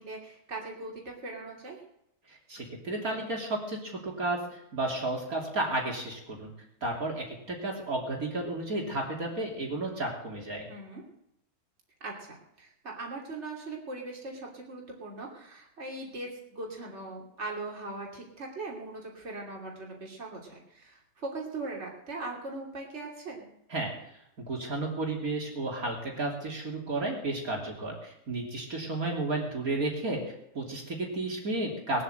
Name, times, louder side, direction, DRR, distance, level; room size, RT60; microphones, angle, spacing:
voice 1, 0.0-1.8 10.7-11.0 12.0-23.5, right 2 dB, 40° right, -1 dB, 3.2 m, -40 dB
voice 2, 2.3-6.5 6.8-10.7 23.7-23.9 24.4-32.0, right 2 dB, 55° right, -1 dB, 3.3 m, -32 dB
21.0 x 7.9 x 7.9 m, 0.78 s
omnidirectional pair, 1.8 m